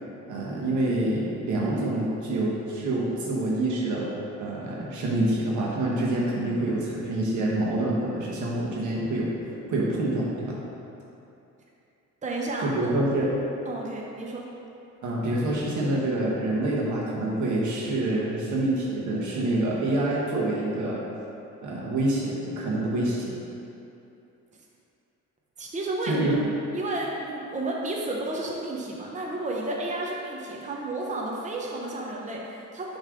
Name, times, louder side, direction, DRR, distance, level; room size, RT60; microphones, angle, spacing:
voice 1, 0.3-4.1 4.4-9.3 9.7-10.6 12.6-13.3 15.0-21.0 21.6-23.4 26.1-26.3, right 1 dB, 75° right, -4 dB, 1.3 m, -26 dB
voice 2, 12.2-12.9 13.7-14.4 25.6-33.0, right 2 dB, 25° right, -2 dB, 0.7 m, -32 dB
6.3 x 3.2 x 5.0 m, 2.8 s
cardioid pair, 90°, 30 cm